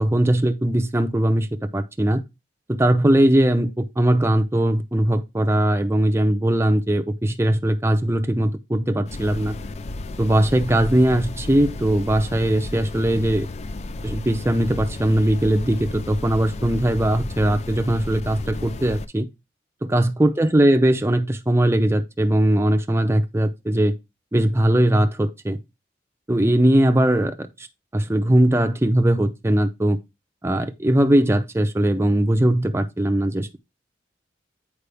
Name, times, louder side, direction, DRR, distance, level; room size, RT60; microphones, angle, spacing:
voice 1, 0.0-2.2 2.8-9.5 10.2-13.5 14.0-19.3 19.8-23.9 24.3-25.6 26.3-27.7 27.9-30.0 30.4-33.6, right 1 dB, 15° right, 0.6 m, -20 dB
sound 1, 9.1-19.1, left 2 dB, 40° left, 0.4 m, -33 dB
8.4 x 4.8 x 3.4 m
head